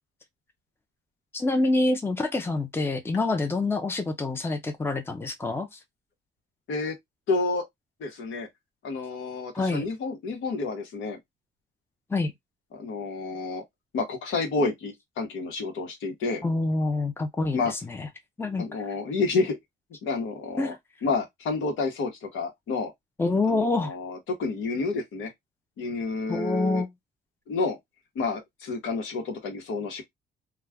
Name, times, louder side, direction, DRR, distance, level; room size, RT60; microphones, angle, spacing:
voice 1, 1.3-5.8 9.5-9.8 12.1-12.3 16.4-18.1 18.4-18.6 20.6-20.7 23.2-23.9 26.3-26.9, left 2 dB, 10° left, 0.6 m, -26 dB
voice 2, 7.3-7.6 8.0-8.5 8.8-11.2 12.7-13.6 13.9-16.4 17.5-17.7 18.6-19.6 20.0-20.7 21.0-22.9 23.5-25.3 25.8-26.8 27.5-27.8 28.1-30.0, left 3 dB, 75° left, 1.1 m, -29 dB
2.3 x 2.3 x 3.4 m
cardioid pair, 90°, 20 cm